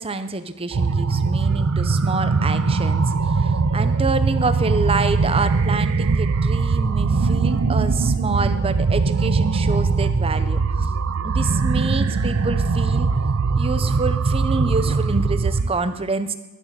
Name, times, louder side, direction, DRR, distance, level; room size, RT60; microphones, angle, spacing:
voice 1, 0.0-10.9 11.2-13.1 13.5-16.3, right 3 dB, 25° right, 11 dB, 0.6 m, -27 dB
sound 1, 0.7-15.7, right 4 dB, 85° right, 0.6 m, -21 dB
11.5 x 7.1 x 6.7 m, 1.0 s
head